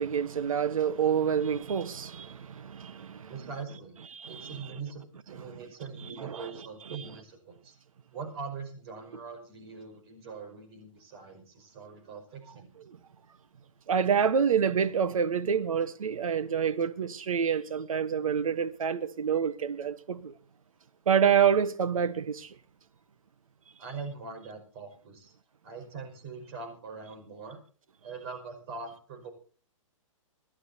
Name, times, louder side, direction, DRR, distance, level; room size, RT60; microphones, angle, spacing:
voice 1, 0.0-3.3 4.1-4.5 6.2-6.5 6.9-7.1 12.9-13.0 13.9-20.3 21.1-22.5, right 7 dB, 85° right, 1.2 m, -27 dB
voice 2, 3.3-4.0 4.3-7.8 8.1-12.7 23.8-25.3 25.6-27.6 28.0-29.3, right 4 dB, 50° right, 5.3 m, -42 dB
27.5 x 11.5 x 2.8 m
hypercardioid pair, 150°, 17 cm